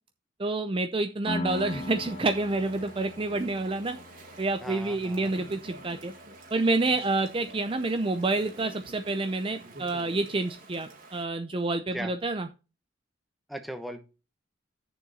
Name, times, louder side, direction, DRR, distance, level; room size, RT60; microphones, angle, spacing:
voice 1, 0.4-4.0 4.4-6.1 6.5-12.5, right 2 dB, 25° right, 7 dB, 0.5 m, -28 dB
Piano, 1.3-8.7, left 3 dB, 30° left, 0.4 m, -42 dB
Chatter / Stream, 1.5-11.2, right 2 dB, 45° right, 1.9 m, -48 dB
voice 2, 4.6-5.3 11.9-12.1 13.5-14.0, equal, ahead, 6 dB, 1.0 m, -38 dB
8.7 x 6.9 x 4.1 m, 0.31 s
head